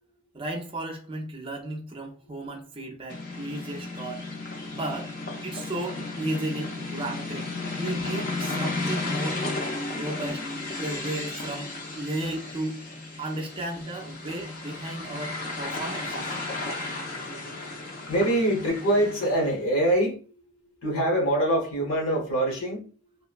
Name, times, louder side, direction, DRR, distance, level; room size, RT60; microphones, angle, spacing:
voice 1, 0.3-4.2 4.7-5.1 5.4-7.5 7.8-9.4 9.9-10.5 10.8-12.8 13.2-16.4, right 2 dB, 25° right, 0.5 m, -34 dB
car passing on a hike trail, 3.1-19.5, left 2 dB, 40° left, 0.5 m, -34 dB
voice 2, 18.1-20.2 20.8-22.9, right 1 dB, 80° left, 1.0 m, -24 dB
2.9 x 2.0 x 2.4 m
head